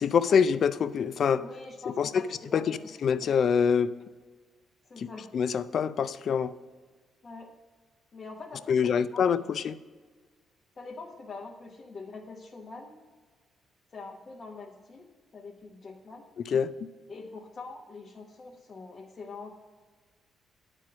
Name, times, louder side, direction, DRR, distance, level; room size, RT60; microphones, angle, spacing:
voice 1, 0.0-1.4 2.0-2.2 2.5-3.9 5.0-5.1 5.3-6.5 8.7-9.8 16.5-16.7, left 7 dB, 60° left, 14 dB, 0.4 m, -25 dB
voice 2, 1.4-2.9 4.9-5.3 7.2-7.5 8.1-9.2 10.8-12.9 13.9-16.2 17.1-19.5, left 3 dB, 45° left, -1 dB, 1.0 m, -44 dB
9.5 x 4.5 x 6.2 m, 1.4 s
cardioid pair, 90°, 0 cm